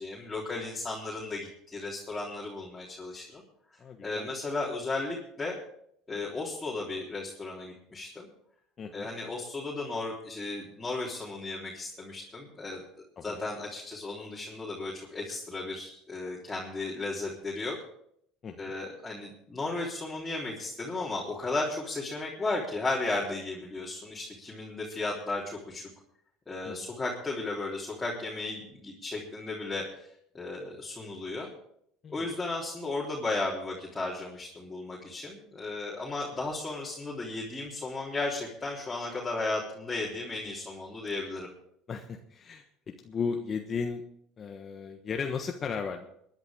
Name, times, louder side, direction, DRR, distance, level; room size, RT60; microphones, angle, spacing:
voice 1, 0.0-3.4 4.0-5.6 6.1-8.3 8.9-12.8 13.2-17.8 18.6-25.9 26.5-30.1 30.3-31.5 32.1-41.5, left 2 dB, 20° left, -4 dB, 3.5 m, -35 dB
voice 2, 3.8-4.3 8.8-9.1 13.2-13.4 18.4-18.7 26.6-26.9 32.0-32.3 41.9-42.6 43.0-44.0 44.4-46.1, left 5 dB, 40° left, 4 dB, 1.3 m, -35 dB
22.5 x 10.5 x 3.7 m, 0.70 s
hypercardioid pair, 70°, 0 cm